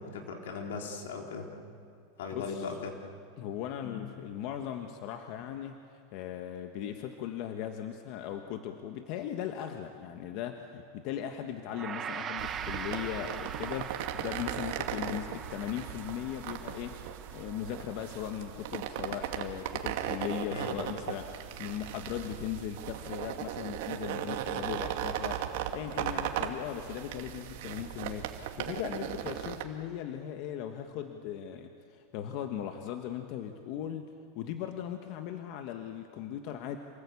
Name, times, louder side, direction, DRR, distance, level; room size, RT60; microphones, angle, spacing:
voice 1, 0.0-1.8 2.2-3.0 20.5-20.7, left 4 dB, 85° left, 1 dB, 3.8 m, -38 dB
voice 2, 2.3-2.8 3.4-34.1 34.3-36.8, left 10 dB, 55° left, 5 dB, 1.5 m, -38 dB
Gong, 11.7-21.1, right 7 dB, 25° right, 1.3 m, -43 dB
sound 1, 12.4-29.6, right 11 dB, 70° right, 2.0 m, -37 dB
27.5 x 19.0 x 8.6 m, 2.3 s
supercardioid pair, 135°, 0 cm